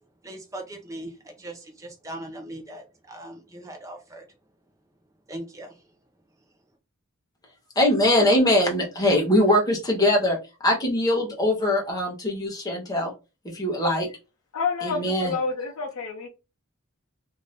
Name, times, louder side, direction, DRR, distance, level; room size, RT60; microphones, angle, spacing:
voice 1, 0.2-4.3 5.3-5.9, right 1 dB, 15° right, 0.6 m, -39 dB
voice 2, 7.8-10.4 10.6-13.1 13.4-14.1 14.8-15.3, left 1 dB, 15° left, 0.9 m, -22 dB
voice 3, 14.5-16.3, left 5 dB, 80° left, 0.6 m, -28 dB
2.7 x 2.6 x 3.3 m
head